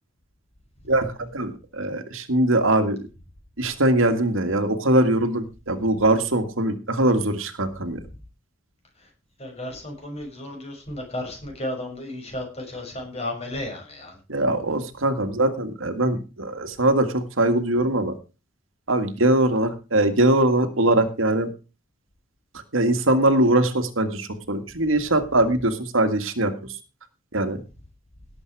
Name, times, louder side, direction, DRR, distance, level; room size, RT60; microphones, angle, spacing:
voice 1, 0.9-3.0 3.6-8.0 14.3-18.1 18.9-21.5 22.7-26.5 27.3-27.6, right 1 dB, 80° right, 8 dB, 2.0 m, -22 dB
voice 2, 9.4-14.2, left 1 dB, 30° left, 2 dB, 6.2 m, -33 dB
17.5 x 7.9 x 4.8 m, 0.31 s
head